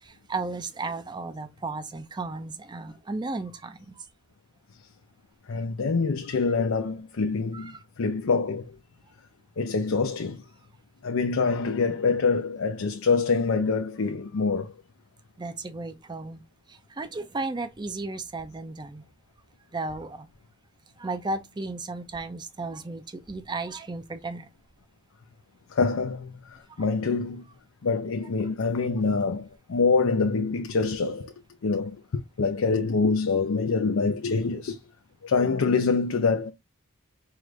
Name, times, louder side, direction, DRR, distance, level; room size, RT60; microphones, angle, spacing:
voice 1, 0.0-4.1 5.5-5.6 7.5-7.8 15.4-16.4 16.7-19.0 19.7-20.3 21.0-24.5 26.8-26.9, right 3 dB, 20° right, 0.5 m, -34 dB
voice 2, 5.5-8.8 9.6-10.4 11.0-14.7 25.7-27.4 27.8-31.3 31.6-34.8 35.2-36.5, left 4 dB, 70° left, 0.5 m, -25 dB
4.8 x 2.5 x 3.1 m
head